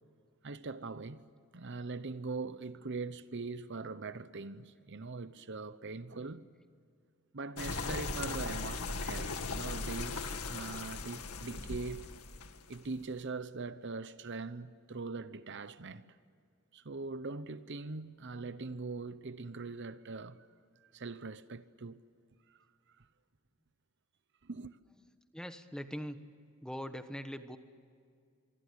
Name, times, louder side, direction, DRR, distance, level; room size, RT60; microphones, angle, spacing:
voice 1, 0.4-1.2 1.5-6.5 7.3-12.1 12.7-16.0 16.7-20.5 20.8-22.0 22.5-22.6 23.0-23.1 24.4-24.8, right 3 dB, 55° right, 0.8 m, -42 dB
sound 1, 7.6-13.0, left 3 dB, 80° left, 2.0 m, -38 dB
voice 2, 25.3-26.2 26.6-27.6, equal, 5° left, 1.2 m, -41 dB
26.0 x 24.5 x 8.2 m
head